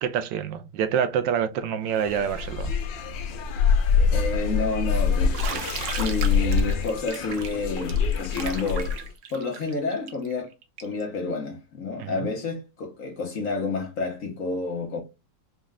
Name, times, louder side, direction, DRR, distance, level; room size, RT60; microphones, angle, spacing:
voice 1, 0.0-2.7 12.0-12.2, right 8 dB, 80° right, 1.3 m, -26 dB
sound 1, 1.9-9.1, left 5 dB, 85° left, 1.4 m, -25 dB
voice 2, 4.1-5.7 6.0-8.9 9.3-10.5 10.8-15.0, left 3 dB, 55° left, 1.1 m, -29 dB
Bathtub (filling or washing), 5.3-11.0, right 7 dB, 65° right, 0.7 m, -36 dB
5.3 x 2.2 x 3.5 m
omnidirectional pair, 2.0 m